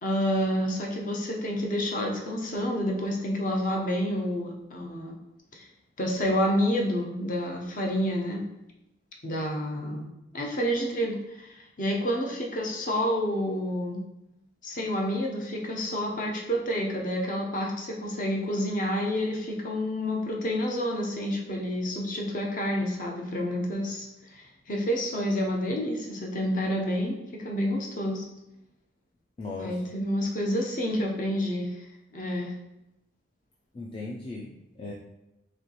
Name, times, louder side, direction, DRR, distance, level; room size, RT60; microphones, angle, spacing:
voice 1, 0.0-5.2 5.5-5.7 6.0-8.4 9.2-14.0 14.6-28.2 29.6-31.8 32.1-32.5, equal, 45° left, 0 dB, 0.7 m, -29 dB
voice 2, 29.4-29.8 33.7-34.9, left 3 dB, 30° left, -1 dB, 0.3 m, -38 dB
4.2 x 3.0 x 2.9 m, 0.91 s
head